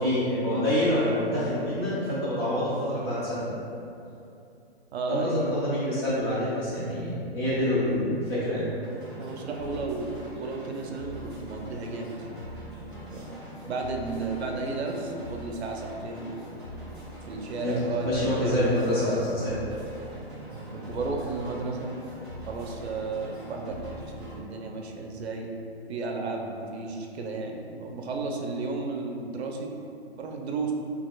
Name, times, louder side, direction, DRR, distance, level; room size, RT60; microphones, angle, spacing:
voice 1, 0.0-3.5 5.1-8.7 17.6-17.7 18.0-19.5, left 1 dB, 25° left, -10 dB, 0.8 m, -26 dB
voice 2, 4.9-5.4 9.2-13.4 13.7-16.5 17.2-18.8 19.0-19.2 20.5-21.9 22.5-25.5 25.9-29.7 30.2-30.7, right 3 dB, 80° right, 2 dB, 0.6 m, -33 dB
sound 1, 8.8-24.4, equal, 5° right, 1.1 m, -42 dB
4.1 x 2.8 x 2.3 m, 2.7 s
hypercardioid pair, 165°, 32 cm